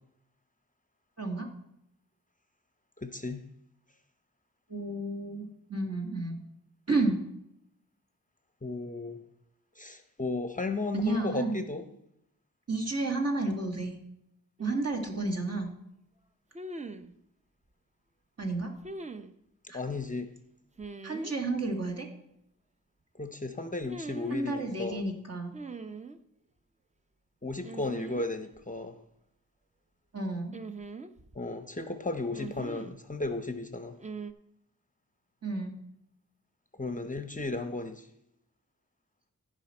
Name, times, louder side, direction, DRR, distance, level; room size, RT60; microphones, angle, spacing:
voice 1, 1.2-1.5 4.7-6.4 6.9-7.2 10.9-11.6 12.7-13.9 14.6-15.7 18.4-18.7 19.7-19.8 21.0-22.1 24.3-25.5 30.1-30.6 35.4-35.7, right 2 dB, 45° right, 2 dB, 1.9 m, -31 dB
voice 2, 3.0-3.4 8.6-9.2 9.8-11.8 19.6-20.3 23.1-25.0 27.4-29.0 31.3-34.0 36.8-38.1, left 3 dB, 25° left, 8 dB, 0.7 m, -34 dB
sound 1, 14.6-14.7 16.5-17.1 18.8-19.3 20.8-21.3 23.8-24.4 25.5-26.2 27.6-28.3 28.6-28.7 30.5-31.4 32.3-33.0 34.0-34.3, right 3 dB, 20° right, 0.6 m, -41 dB
15.0 x 5.1 x 4.3 m, 0.79 s
wide cardioid pair, 65°, 34 cm